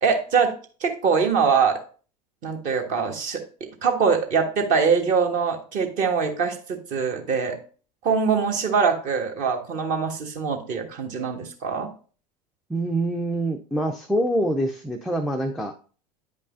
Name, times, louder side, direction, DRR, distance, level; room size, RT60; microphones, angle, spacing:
voice 1, 0.0-0.5 0.8-1.8 2.4-3.4 3.8-7.6 8.0-11.9, right 5 dB, 40° right, 4 dB, 1.4 m, -23 dB
voice 2, 12.7-15.7, right 1 dB, ahead, 2 dB, 0.5 m, -25 dB
9.6 x 5.3 x 2.5 m, 0.39 s
figure-of-eight pair, 80°, 21 cm